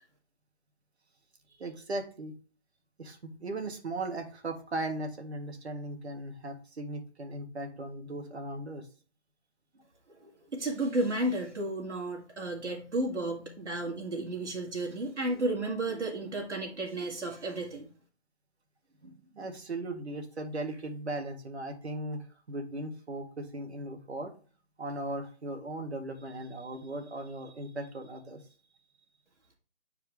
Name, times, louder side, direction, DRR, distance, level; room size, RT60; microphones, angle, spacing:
voice 1, 1.6-2.3 3.0-8.9 19.0-24.3 24.8-28.4, right 2 dB, 70° right, 4 dB, 1.7 m, -38 dB
voice 2, 10.1-17.9, right 2 dB, 90° right, -1 dB, 2.1 m, -33 dB
8.2 x 4.6 x 3.4 m, 0.38 s
hypercardioid pair, 170°, 34 cm